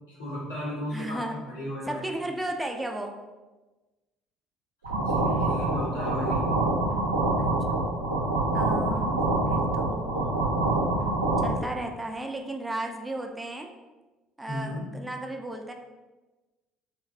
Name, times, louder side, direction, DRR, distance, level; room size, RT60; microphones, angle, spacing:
voice 1, 0.1-2.0 5.0-6.4 14.4-14.9, equal, 85° left, -9 dB, 1.0 m, -34 dB
voice 2, 0.9-1.4 1.9-3.2 7.4-7.8 8.5-9.2 9.5-10.4 11.4-13.7 14.4-15.7, right 1 dB, 15° right, 3 dB, 0.3 m, -34 dB
sound 1, 4.8-11.5, right 2 dB, 85° right, 0.4 m, -26 dB
2.5 x 2.3 x 2.3 m, 1.2 s
hypercardioid pair, 55°, 0 cm